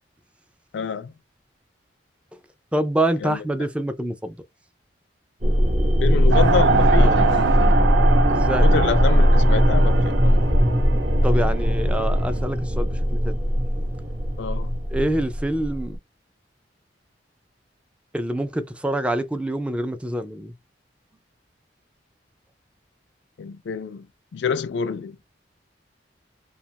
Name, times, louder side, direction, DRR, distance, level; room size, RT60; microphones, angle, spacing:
voice 1, 0.7-1.1 3.2-3.4 6.0-7.9 8.3-10.6 14.4-14.8 23.4-24.1 24.3-25.2, left 6 dB, 75° left, 0.4 m, -27 dB
voice 2, 2.7-4.4 7.0-7.2 8.3-8.7 11.2-13.4 14.9-16.0 18.1-20.5, right 1 dB, 5° right, 0.4 m, -26 dB
sound 1, 5.4-15.9, equal, 45° right, 0.8 m, -19 dB
sound 2, 6.3-12.4, right 5 dB, 75° right, 0.5 m, -25 dB
2.8 x 2.3 x 2.8 m
head